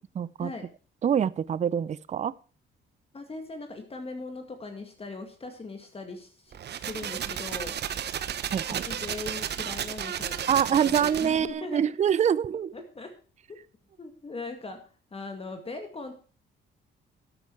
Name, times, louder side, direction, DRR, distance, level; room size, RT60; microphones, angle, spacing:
voice 1, 0.2-0.5 1.0-2.3 8.5-8.8 10.5-12.7, right 8 dB, 35° right, 20 dB, 0.5 m, -25 dB
voice 2, 3.1-7.7 8.7-11.8 12.7-13.1 14.0-14.8 15.1-16.1, left 3 dB, 30° left, 5 dB, 2.1 m, -39 dB
sound 1, 6.5-11.5, right 9 dB, 55° right, 0.9 m, -33 dB
12.0 x 9.0 x 4.7 m, 0.38 s
cardioid pair, 90°, 20 cm